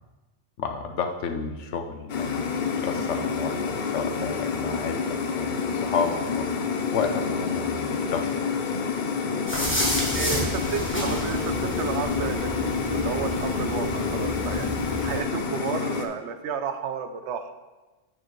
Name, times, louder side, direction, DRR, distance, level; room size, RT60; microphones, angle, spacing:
voice 1, 0.6-6.5 6.9-8.3, left 5 dB, 85° left, 6 dB, 1.0 m, -31 dB
sound 1, 2.1-16.1, left 5 dB, 55° left, 0.6 m, -28 dB
sound 2, 9.5-15.2, equal, 10° left, 1.2 m, -30 dB
voice 2, 10.1-14.7 15.0-17.5, right 7 dB, 80° right, 9 dB, 0.9 m, -32 dB
7.6 x 6.6 x 3.1 m, 1.2 s
omnidirectional pair, 1.2 m